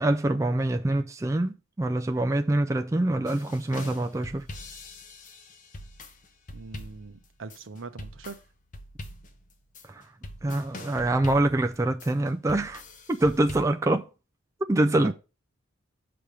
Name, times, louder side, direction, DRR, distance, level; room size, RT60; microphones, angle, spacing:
voice 1, 0.0-4.5 9.9-10.0 10.4-12.8 13.1-14.1 14.7-15.1, right 1 dB, 15° right, 0.3 m, -25 dB
sound 1, 3.2-13.6, left 1 dB, 40° left, 0.8 m, -43 dB
voice 2, 6.5-8.4 15.0-15.1, right 4 dB, 80° right, 0.7 m, -41 dB
6.9 x 3.4 x 6.0 m
head